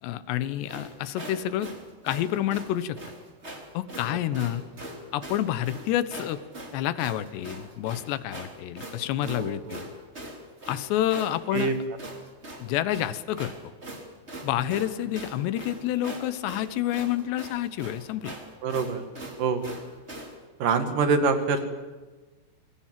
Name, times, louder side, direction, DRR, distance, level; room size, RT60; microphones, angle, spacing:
voice 1, 0.0-1.7 2.0-3.0 3.7-4.6 5.1-6.4 6.7-9.9 10.7-11.7 12.6-13.5 14.4-18.4, left 12 dB, 80° left, 14 dB, 3.3 m, -28 dB
sound 1, 0.7-20.4, right 1 dB, 15° right, 2.9 m, -41 dB
voice 2, 9.2-9.8 11.5-11.7 18.6-19.0 19.4-19.6 20.6-21.7, right 4 dB, 60° right, 8 dB, 3.1 m, -25 dB
27.0 x 22.0 x 7.5 m, 1.3 s
omnidirectional pair, 4.9 m